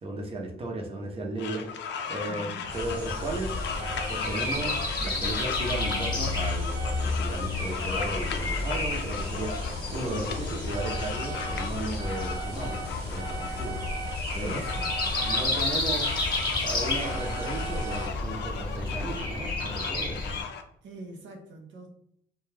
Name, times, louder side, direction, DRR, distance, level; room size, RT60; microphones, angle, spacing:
voice 1, 0.0-1.8 2.1-3.6 3.9-13.8 14.3-14.6 15.2-16.2 16.6-20.2, right 2 dB, 30° right, 1 dB, 0.7 m, -35 dB
sound 1, 1.4-20.6, left 7 dB, 65° left, 0.4 m, -37 dB
voice 2, 2.3-2.7 14.4-15.2 20.8-21.9, right 2 dB, 70° right, 2 dB, 0.6 m, -44 dB
Breathing, 2.7-20.4, left 2 dB, 20° left, 0.9 m, -31 dB
sound 2, 2.7-18.1, right 5 dB, 55° right, 1.2 m, -42 dB
2.3 x 2.2 x 3.2 m, 0.71 s
cardioid pair, 90°, 20 cm